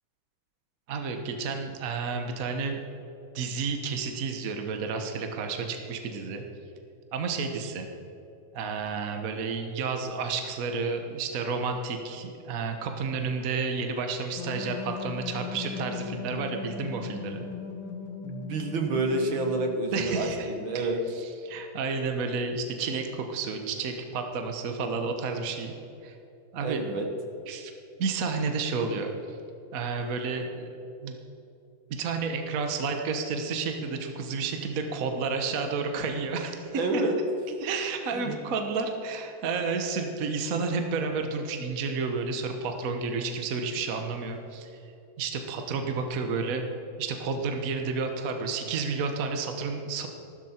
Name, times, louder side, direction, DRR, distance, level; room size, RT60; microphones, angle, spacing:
voice 1, 0.9-2.8 3.3-6.4 7.1-7.9 8.5-17.5 19.9-25.7 26.0-26.1 26.5-26.8 27.5-27.7 28.0-29.4 29.7-30.7 31.0-31.2 32.0-37.0 37.6-44.8 45.2-46.6 47.0-50.1, right 4 dB, 50° right, 5 dB, 1.3 m, -31 dB
sound 1, 14.3-20.0, left 6 dB, 65° left, 2.1 m, -38 dB
voice 2, 18.2-21.0 26.6-27.1 36.7-37.2 38.1-38.4, right 2 dB, 70° right, 4 dB, 2.2 m, -28 dB
14.5 x 13.0 x 4.4 m, 2.9 s
omnidirectional pair, 2.3 m